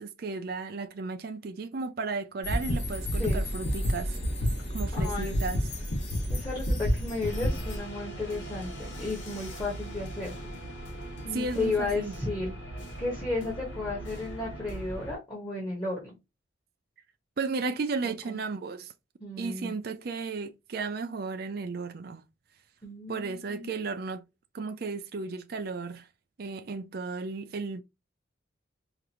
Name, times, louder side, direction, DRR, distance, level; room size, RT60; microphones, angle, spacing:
voice 1, 0.0-4.2 4.7-5.6 11.3-12.2 17.4-18.9 19.4-22.2 23.1-24.2 24.5-26.1 26.4-27.8, right 4 dB, 50° right, 0.4 m, -34 dB
sound 1, 2.4-7.8, equal, 60° left, 2.0 m, -29 dB
voice 2, 4.9-5.4 6.3-10.5 11.2-12.5 13.0-16.1 18.0-18.4 19.2-19.7 22.8-23.7, left 3 dB, 20° left, 1.3 m, -34 dB
sound 2, 7.2-15.1, right 1 dB, 80° left, 1.5 m, -40 dB
4.8 x 2.6 x 2.9 m
head